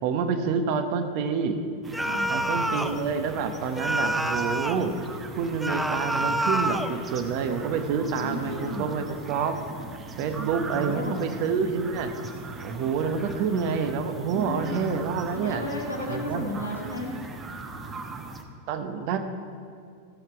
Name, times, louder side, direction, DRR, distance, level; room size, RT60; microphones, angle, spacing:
voice 1, 0.0-1.6 2.3-5.0 5.4-9.6 10.2-12.1 12.6-15.7 16.1-16.4 18.7-19.2, right 6 dB, 45° right, 7 dB, 1.0 m, -28 dB
sound 1, 1.8-18.4, right 3 dB, 20° right, 1.0 m, -40 dB
sound 2, 1.9-3.0 3.8-4.9 5.6-7.0, right 1 dB, 5° right, 0.5 m, -27 dB
voice 2, 2.0-2.3 8.2-8.9 10.7-11.2 14.3-14.7 15.3-17.1, left 1 dB, 80° left, -3 dB, 2.2 m, -34 dB
15.5 x 7.7 x 4.7 m, 2.2 s
figure-of-eight pair, 90°, 0 cm